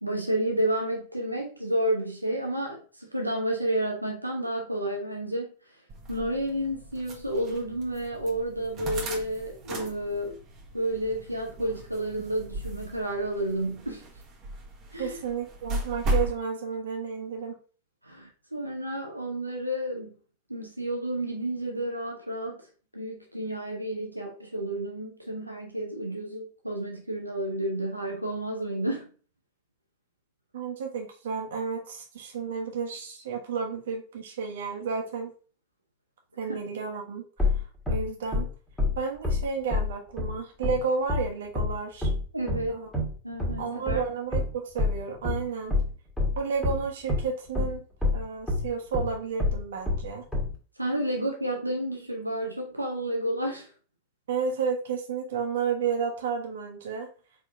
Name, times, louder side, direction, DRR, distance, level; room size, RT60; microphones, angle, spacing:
voice 1, 0.0-5.5 6.1-10.4 10.7-14.0 14.9-15.2 18.0-20.1 20.5-22.6 22.9-29.1 36.5-36.6 42.3-42.8 43.2-44.0 50.8-53.7, right 1 dB, 85° right, 1 dB, 0.7 m, -31 dB
sound 1, 5.9-16.4, right 1 dB, 35° right, 1.2 m, -36 dB
voice 2, 15.0-17.6 30.5-35.3 36.4-37.6 37.9-38.5 38.9-42.1 42.7-42.9 43.6-45.7 46.3-47.8 48.1-50.2 54.3-57.1, right 5 dB, 60° right, 2 dB, 1.1 m, -32 dB
sound 2, 37.4-47.3 47.5-50.5, left 3 dB, 5° left, 1.6 m, -27 dB
4.6 x 3.5 x 2.5 m, 0.39 s
figure-of-eight pair, 90°, 0 cm